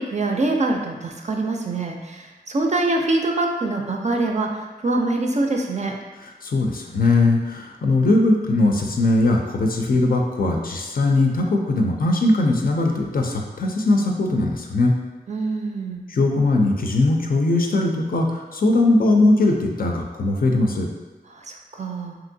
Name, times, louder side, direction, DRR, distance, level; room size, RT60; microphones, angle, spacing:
voice 1, 0.0-5.9 15.3-16.0 21.5-22.2, right 2 dB, 45° right, 1 dB, 0.4 m, -24 dB
voice 2, 6.4-14.9 16.1-20.9, left 2 dB, 60° left, 1 dB, 0.4 m, -20 dB
2.9 x 2.5 x 2.6 m, 1.2 s
wide cardioid pair, 50°, 17 cm